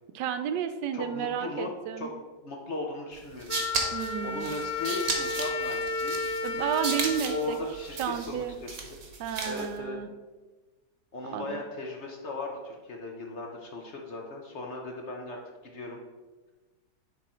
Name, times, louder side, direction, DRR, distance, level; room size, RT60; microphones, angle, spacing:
voice 1, 0.1-2.1 3.9-4.6 6.4-7.6 8.0-8.6 9.2-10.1 11.3-11.6, right 8 dB, 80° right, 10 dB, 1.2 m, -32 dB
voice 2, 0.9-1.7 2.0-2.1 2.4-3.6 4.2-6.2 7.3-9.0 9.4-10.0 11.1-15.4 15.6-16.0, left 3 dB, 50° left, 1 dB, 0.9 m, -37 dB
sound 1, 3.2-9.8, right 4 dB, 55° right, 1.5 m, -35 dB
Wind instrument woodwind instrument, 3.5-8.3, left 3 dB, 75° left, 0.5 m, -33 dB
10.0 x 3.8 x 4.3 m, 1.3 s
omnidirectional pair, 1.9 m